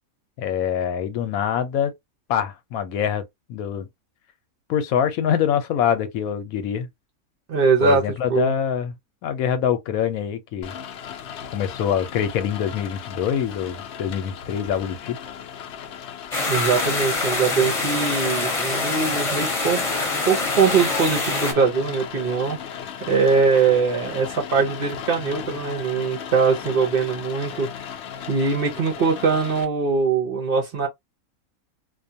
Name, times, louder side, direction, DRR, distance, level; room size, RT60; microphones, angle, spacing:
voice 1, 0.4-1.9 2.3-3.2 3.5-3.9 4.7-6.9 7.8-9.0 9.2-10.8 11.5-15.2, left 8 dB, 80° left, 1.1 m, -24 dB
voice 2, 7.5-8.0 8.3-8.5 16.5-19.8 20.3-22.6 23.1-27.7 28.3-30.9, right 5 dB, 50° right, 0.7 m, -21 dB
Rain, 10.6-29.6, left 8 dB, 65° left, 0.7 m, -36 dB
sound 1, 16.3-21.5, left 3 dB, 30° left, 0.8 m, -25 dB
2.5 x 2.3 x 2.6 m
omnidirectional pair, 1.5 m